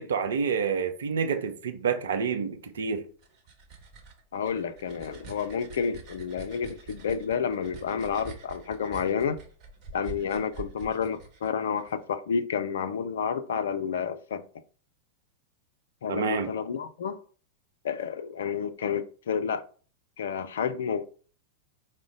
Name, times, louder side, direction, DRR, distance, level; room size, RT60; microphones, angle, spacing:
voice 1, 0.0-3.1 16.1-16.5, right 6 dB, 65° right, 0.6 m, -28 dB
sound 1, 3.0-11.9, right 4 dB, 40° right, 1.1 m, -46 dB
voice 2, 4.3-9.4 9.9-14.4 16.0-17.2 17.8-19.6 20.2-21.1, left 6 dB, 60° left, 0.4 m, -30 dB
4.8 x 2.1 x 3.8 m
figure-of-eight pair, 90°, 0 cm